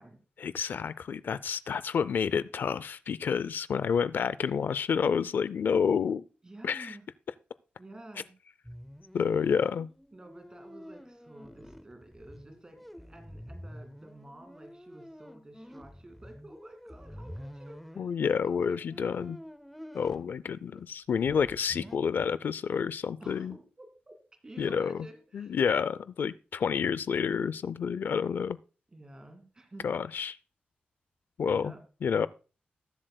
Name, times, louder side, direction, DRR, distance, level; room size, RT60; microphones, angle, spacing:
voice 1, 0.4-6.2 6.6-7.0 9.1-9.9 18.0-19.4 19.9-23.5 24.6-25.0 25.3-28.6 29.8-30.4 31.4-31.7 32.0-32.3, left 6 dB, 70° left, 0.4 m, -29 dB
voice 2, 6.4-7.1 7.8-8.3 9.4-9.8 10.1-18.2 18.4-19.0 19.9-20.3 23.2-24.1 24.4-25.6 28.9-29.9 31.4-31.8, right 1 dB, 25° right, 2.1 m, -51 dB
sound 1, 8.6-20.3 20.8-20.9 21.2-22.0, equal, ahead, 0.5 m, -48 dB
19.5 x 7.6 x 2.2 m
wide cardioid pair, 160°, 3 cm